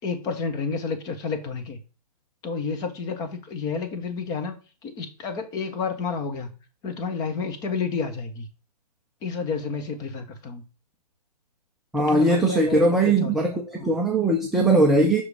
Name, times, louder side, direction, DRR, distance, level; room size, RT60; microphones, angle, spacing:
voice 1, 0.0-1.8 2.4-8.5 9.2-10.6 12.0-13.4 13.8-13.9, left 5 dB, 20° left, 1.0 m, -30 dB
voice 2, 11.9-15.2, right 2 dB, ahead, 0.5 m, -20 dB
5.4 x 4.9 x 4.9 m
figure-of-eight pair, 135°, 21 cm